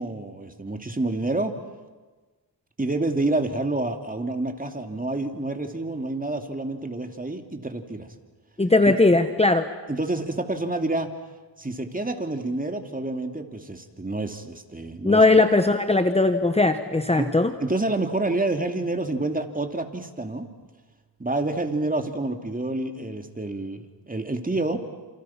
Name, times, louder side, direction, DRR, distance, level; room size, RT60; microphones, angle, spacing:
voice 1, 0.0-1.6 2.8-8.1 8.8-8.9 9.9-11.1 11.6-15.2 17.2-17.3 17.6-20.5 21.2-24.8, right 2 dB, 20° right, 6 dB, 2.8 m, -28 dB
voice 2, 8.6-9.7 15.0-17.5, left 2 dB, 15° left, 8 dB, 1.3 m, -19 dB
30.0 x 28.0 x 6.0 m, 1.3 s
cardioid pair, 75°, 43 cm